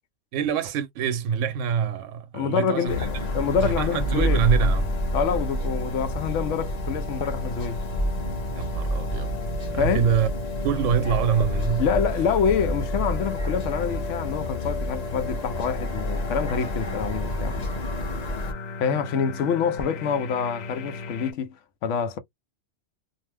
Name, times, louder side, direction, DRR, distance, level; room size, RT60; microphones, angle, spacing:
voice 1, 0.3-3.1 3.6-4.9 8.5-9.4 9.7-10.3 10.6-11.8, right 7 dB, 85° right, 0.9 m, -25 dB
voice 2, 2.3-4.4 5.1-7.8 9.8-10.1 11.8-17.7 18.8-21.6 21.8-22.2, left 7 dB, 80° left, 0.9 m, -26 dB
sound 1, 2.7-21.3, left 4 dB, 55° left, 0.5 m, -35 dB
sound 2, 2.9-18.5, equal, 35° left, 1.0 m, -29 dB
2.6 x 2.0 x 3.2 m
omnidirectional pair, 1.3 m